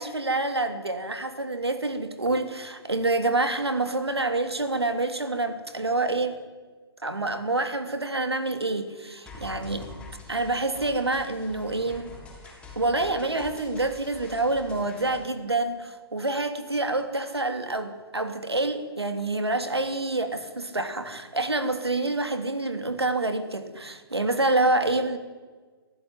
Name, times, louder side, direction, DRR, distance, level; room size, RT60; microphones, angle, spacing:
voice 1, 0.0-6.4 7.0-9.9 10.3-12.1 12.7-25.2, right 2 dB, 85° right, 8 dB, 3.1 m, -27 dB
sound 1, 9.3-15.3, left 3 dB, 10° left, 6.2 m, -45 dB
25.0 x 15.0 x 9.7 m, 1.4 s
figure-of-eight pair, 130°, 13 cm